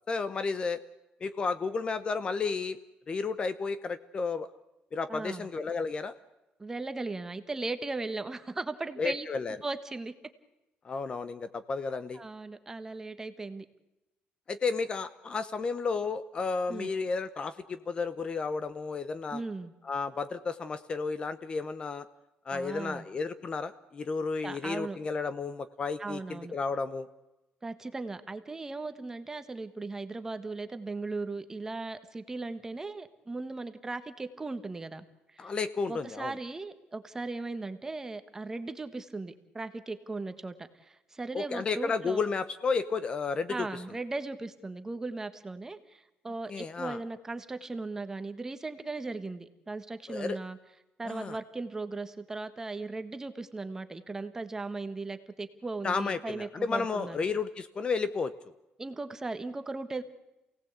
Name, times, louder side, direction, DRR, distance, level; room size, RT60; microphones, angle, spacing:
voice 1, 0.1-0.8 1.2-2.8 3.1-4.5 4.9-6.1 9.0-9.6 10.8-12.2 14.5-19.4 19.8-22.1 22.5-27.1 35.4-36.3 41.3-43.7 46.5-47.0 50.1-50.4 51.0-51.4 55.8-58.3, left 4 dB, 25° left, 13 dB, 0.8 m, -32 dB
voice 2, 5.1-5.5 6.6-9.3 9.6-10.1 12.1-13.7 16.7-16.9 19.3-19.7 22.5-23.0 24.4-25.0 26.0-26.5 27.6-35.0 35.3-35.5 35.9-42.2 43.5-50.6 51.0-57.2 58.8-60.0, right 3 dB, 15° right, 10 dB, 1.3 m, -37 dB
28.0 x 18.0 x 8.2 m, 0.96 s
cardioid pair, 165°, 4 cm